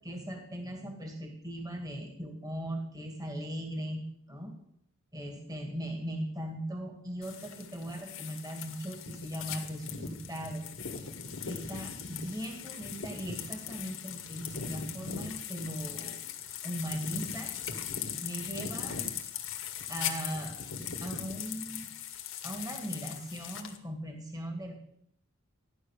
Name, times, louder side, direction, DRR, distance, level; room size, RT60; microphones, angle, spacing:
voice 1, 0.0-4.5 5.1-10.6 11.5-16.2 16.6-17.5 18.2-19.0 19.9-20.6 21.0-21.9 22.4-24.7, equal, 20° right, 3 dB, 2.3 m, -39 dB
sound 1, 7.2-23.8, left 8 dB, 70° left, 1.8 m, -39 dB
15.0 x 11.0 x 6.6 m, 0.71 s
head